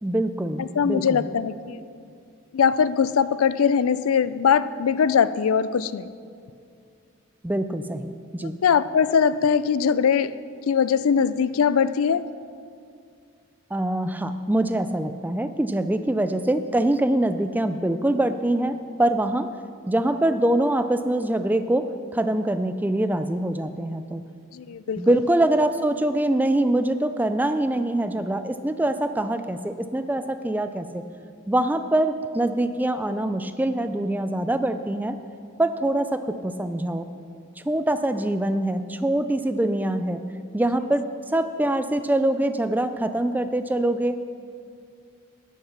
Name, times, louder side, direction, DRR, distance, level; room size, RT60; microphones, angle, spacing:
voice 1, 0.0-1.3 7.4-8.6 13.7-19.5 19.9-21.9 22.1-24.2 25.0-31.0 31.5-35.2 35.6-37.1 37.7-40.2 40.5-41.0 41.3-44.2, right 1 dB, 10° right, 10 dB, 0.3 m, -24 dB
voice 2, 0.6-1.8 2.5-6.1 8.4-10.4 10.7-12.3 24.5-25.2, left 7 dB, 75° left, 15 dB, 0.4 m, -21 dB
11.5 x 10.0 x 5.6 m, 2.4 s
head